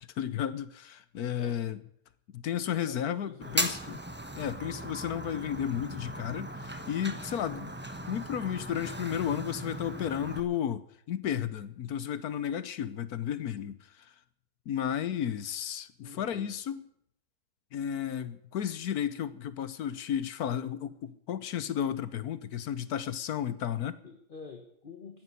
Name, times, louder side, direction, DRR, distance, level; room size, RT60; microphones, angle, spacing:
voice 1, 0.2-1.8 2.3-4.0 4.3-7.7 8.1-14.1 14.7-16.8 17.7-24.0, left 9 dB, 70° left, 1.3 m, -33 dB
voice 2, 2.7-4.0 16.0-16.5 24.0-25.2, left 4 dB, 35° left, 1.3 m, -48 dB
Fire, 3.4-10.4, right 1 dB, 10° right, 0.9 m, -37 dB
13.5 x 10.0 x 9.6 m
omnidirectional pair, 1.7 m